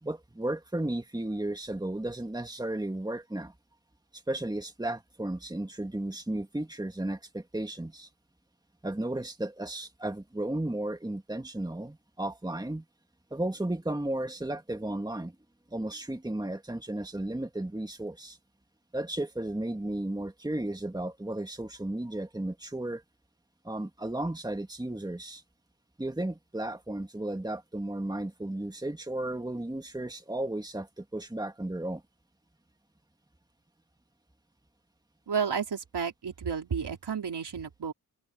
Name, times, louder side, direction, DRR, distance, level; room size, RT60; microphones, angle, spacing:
voice 1, 0.0-3.5 4.1-8.1 8.8-12.8 13.3-15.3 15.7-18.4 18.9-23.0 23.6-25.4 26.0-32.0, right 1 dB, 10° right, 2.2 m, -34 dB
voice 2, 35.3-37.9, right 6 dB, 80° right, 3.7 m, -32 dB
open air
wide cardioid pair, 115°, 40 cm